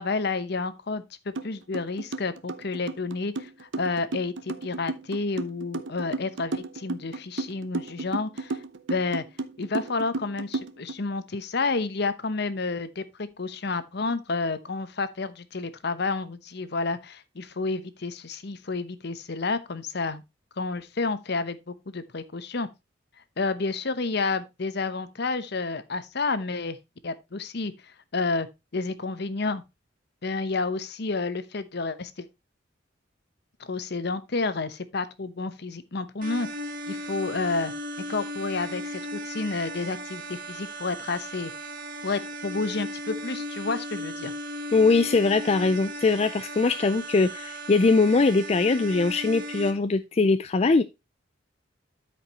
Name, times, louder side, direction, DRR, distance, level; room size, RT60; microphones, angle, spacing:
voice 1, 0.0-8.6 8.9-9.2 9.6-20.2 20.6-22.7 23.4-26.8 27.0-28.5 28.7-29.6 30.2-32.3 33.7-36.5 36.9-37.7 38.1-41.5 42.0-44.3, left 3 dB, 60° left, 0.9 m, -30 dB
sound 1, 1.4-1.5 1.7-10.9, right 3 dB, 80° right, 0.8 m, -33 dB
sound 2, 36.2-49.7, equal, 50° right, 1.5 m, -36 dB
voice 2, 44.7-50.8, left 3 dB, 35° left, 0.4 m, -21 dB
12.5 x 5.1 x 2.9 m
head